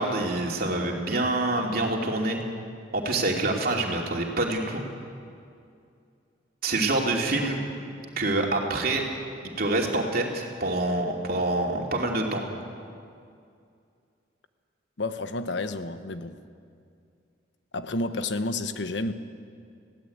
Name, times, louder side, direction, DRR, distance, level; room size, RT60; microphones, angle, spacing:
voice 1, 0.0-2.4 2.9-4.8 6.6-7.6 8.2-9.0 9.6-12.4, right 2 dB, 55° right, 0 dB, 2.8 m, -26 dB
voice 2, 15.0-16.4 17.7-19.1, left 2 dB, 70° left, 10 dB, 1.1 m, -30 dB
20.5 x 16.5 x 8.7 m, 2.4 s
head